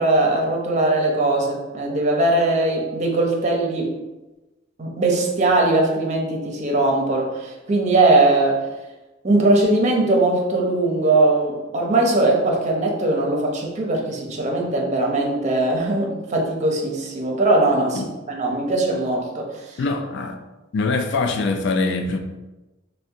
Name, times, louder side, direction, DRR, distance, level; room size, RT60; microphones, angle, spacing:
voice 1, 0.0-4.0 4.8-8.7 9.2-19.8, right 2 dB, 40° right, 0.6 m, -20 dB
voice 2, 19.8-20.4 20.7-22.2, left 3 dB, 65° left, 0.3 m, -23 dB
3.4 x 2.1 x 2.7 m
head